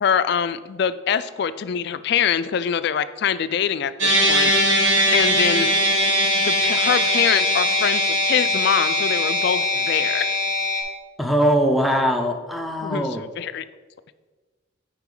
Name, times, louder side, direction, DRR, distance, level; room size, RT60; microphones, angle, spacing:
voice 1, 0.0-4.5 5.1-5.7 6.4-10.3 12.8-13.6, left 8 dB, 55° left, 14 dB, 0.3 m, -24 dB
sound 1, 4.0-10.8, equal, 80° right, 1.7 m, -20 dB
voice 2, 11.2-13.2, equal, ahead, 4 dB, 0.5 m, -21 dB
9.0 x 4.9 x 3.8 m, 1.4 s
head